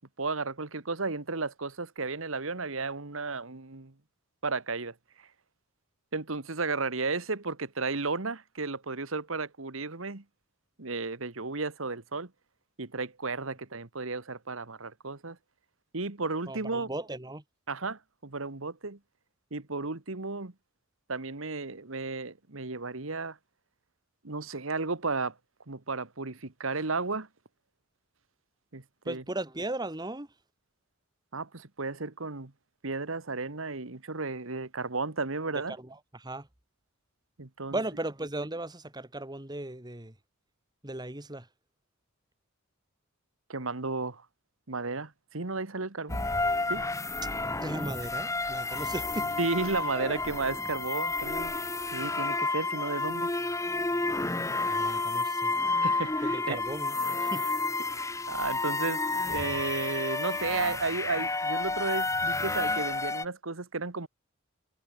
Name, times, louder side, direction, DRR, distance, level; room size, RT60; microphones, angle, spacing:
voice 1, 0.2-3.9 4.4-4.9 6.1-10.2 10.8-12.3 12.8-15.4 15.9-16.9 17.7-19.0 19.5-20.5 21.1-23.4 24.2-25.3 25.7-27.3 28.7-29.2 31.3-32.5 32.8-35.8 37.4-37.8 43.5-44.2 44.7-46.3 46.7-46.9 48.4-48.5 49.4-51.6 51.9-53.3 55.8-56.6 57.9-64.1, right 3 dB, 70° right, 1.6 m, -33 dB
voice 2, 16.5-17.4 29.1-30.3 35.8-36.5 37.7-40.1 40.8-41.5 47.6-49.3 54.7-55.5 56.2-57.4, right 1 dB, 20° right, 2.3 m, -37 dB
sound 1, 46.1-63.3, left 3 dB, 15° left, 1.3 m, -30 dB
head